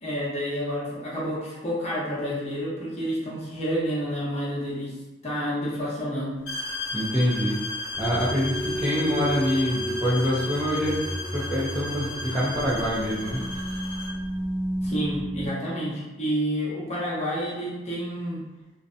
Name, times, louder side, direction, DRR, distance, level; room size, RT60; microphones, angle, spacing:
voice 1, 0.0-4.9 5.2-6.3 14.8-18.4, equal, 35° left, -6 dB, 0.8 m, -29 dB
sound 1, 6.5-14.2, left 2 dB, 85° left, 0.8 m, -35 dB
voice 2, 6.9-7.6 8.0-11.0 11.3-13.4, equal, 5° right, -9 dB, 0.4 m, -25 dB
sound 2, 7.9-15.5, equal, 75° right, 0.9 m, -33 dB
2.6 x 2.1 x 2.5 m, 1.1 s
head